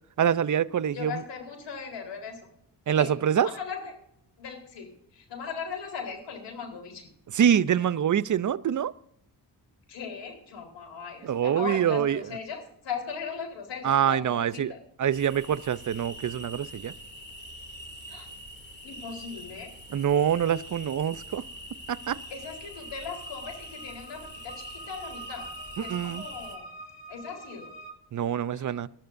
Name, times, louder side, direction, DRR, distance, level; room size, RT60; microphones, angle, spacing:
voice 1, 0.2-1.2 2.9-3.5 7.3-8.9 11.2-12.2 13.8-14.7 15.0-16.9 19.9-21.4 21.9-22.2 25.8-26.2 28.1-28.9, right 9 dB, 45° right, 0.6 m, -25 dB
voice 2, 0.9-2.4 2.9-3.9 4.4-7.1 9.9-14.8 18.1-18.3 18.8-19.7 22.3-26.6 27.1-27.7 28.5-28.8, left 6 dB, 80° left, 4.1 m, -38 dB
sound 1, 15.1-26.6, equal, 25° left, 2.7 m, -44 dB
sound 2, 22.2-27.9, right 3 dB, 50° left, 2.7 m, -46 dB
20.5 x 12.5 x 2.7 m
cardioid pair, 65°, 42 cm